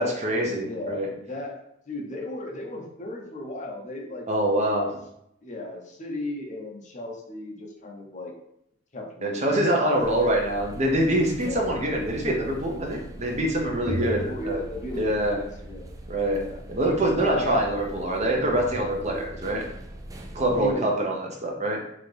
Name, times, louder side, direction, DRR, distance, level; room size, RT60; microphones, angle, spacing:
voice 1, 0.0-1.1 4.3-4.9 9.2-14.6 15.0-15.4 16.1-16.4 16.7-19.7 20.3-21.8, right 1 dB, 35° right, 0 dB, 0.8 m, -25 dB
voice 2, 0.6-1.6 1.9-4.3 5.4-8.3 8.9-10.2 11.4-11.7 13.7-15.9 16.3-16.6 17.2-17.7 20.5-21.1, left 1 dB, 40° left, 1 dB, 0.7 m, -35 dB
sound 1, 10.0-20.7, right 1 dB, 20° right, 0.3 m, -40 dB
3.9 x 2.9 x 3.2 m, 0.76 s
head